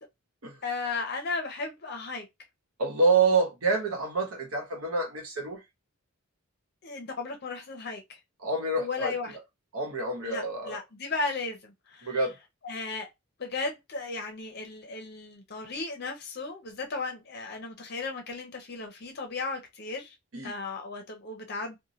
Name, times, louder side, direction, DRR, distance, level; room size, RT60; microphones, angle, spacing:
voice 1, 0.6-2.3 6.8-8.2 8.8-9.4 10.2-12.2 12.6-13.1 13.4-20.1 20.4-21.8, left 3 dB, 50° left, 0.6 m, -35 dB
voice 2, 2.8-5.6 8.4-9.1 9.7-10.8 12.0-12.4 20.3-20.5, right 3 dB, 85° right, 0.9 m, -27 dB
2.6 x 2.1 x 2.9 m
head